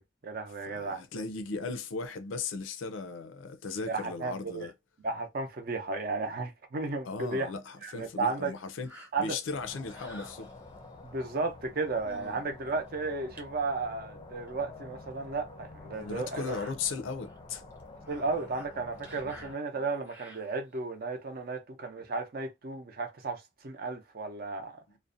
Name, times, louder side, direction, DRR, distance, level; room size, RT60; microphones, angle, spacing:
voice 1, 0.0-1.0 3.9-4.7 5.0-7.5 7.8-8.5 9.1-9.4 11.0-16.6 18.1-24.8, right 3 dB, 50° right, 0.6 m, -34 dB
voice 2, 0.7-4.7 7.0-8.9 9.2-10.5 12.2-12.4 15.9-17.6 19.2-19.5, left 4 dB, 80° left, 0.5 m, -37 dB
sound 1, 8.8-10.9 11.6-11.7 12.0-12.4 12.9-13.0 13.4-13.5 14.5-14.6 15.0-15.1 16.0-16.7 17.3-17.4 17.7-20.8 21.3-21.4, equal, 10° right, 0.8 m, -51 dB
sound 2, 9.5-19.5, left 2 dB, 25° left, 0.4 m, -49 dB
2.5 x 2.1 x 2.5 m
head